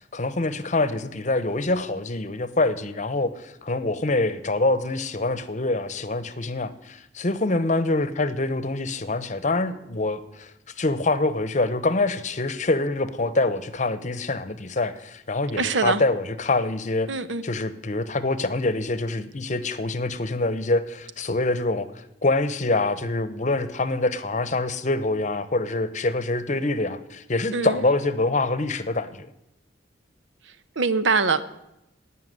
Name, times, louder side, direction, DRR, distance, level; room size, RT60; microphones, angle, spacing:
voice 1, 0.1-10.5 10.8-17.1 17.4-29.3, left 2 dB, 40° left, 0.9 m, -25 dB
voice 2, 15.5-16.0 17.1-17.4 27.5-27.9 30.4-31.4, right 4 dB, 85° right, 0.9 m, -24 dB
17.5 x 5.9 x 9.4 m
head